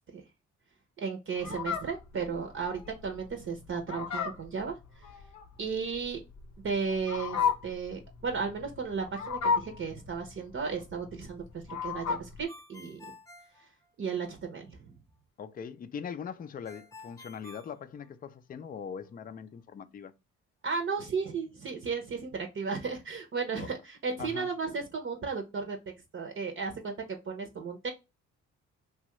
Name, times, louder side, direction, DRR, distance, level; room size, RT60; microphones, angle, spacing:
voice 1, 1.0-4.8 5.6-6.2 6.6-13.0 13.6-13.7 14.0-14.9 20.6-25.8 26.1-27.9, right 5 dB, 45° right, 0.7 m, -34 dB
Fowl, 1.4-12.4, left 6 dB, 60° left, 0.7 m, -34 dB
Ringtone, 12.5-14.4 16.6-18.5, left 2 dB, 10° left, 0.9 m, -51 dB
voice 2, 15.4-20.1 23.6-23.7 24.2-24.5, left 7 dB, 30° left, 0.4 m, -41 dB
2.9 x 2.3 x 2.9 m
cardioid pair, 90°, 30 cm